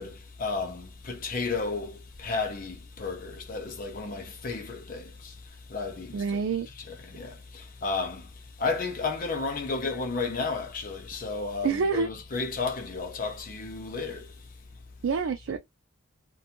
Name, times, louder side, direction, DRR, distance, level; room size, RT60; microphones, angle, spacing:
voice 1, 0.0-14.5, left 4 dB, 45° left, 0.5 m, -33 dB
voice 2, 6.1-6.7 11.6-12.1 15.0-15.6, right 5 dB, 80° right, 0.4 m, -27 dB
2.6 x 2.2 x 2.7 m
head